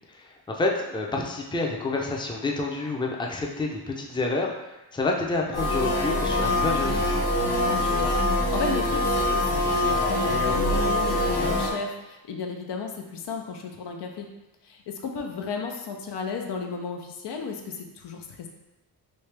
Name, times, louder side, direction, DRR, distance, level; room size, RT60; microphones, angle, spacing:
voice 1, 0.1-4.5 4.9-7.3, left 3 dB, 10° left, 0 dB, 0.4 m, -28 dB
sound 1, 5.5-11.7, left 1 dB, 65° left, 1.1 m, -24 dB
voice 2, 7.5-14.3 14.6-18.5, left 5 dB, 90° left, 2 dB, 0.6 m, -34 dB
3.2 x 2.8 x 3.2 m, 1.0 s
wide cardioid pair, 95°, 40 cm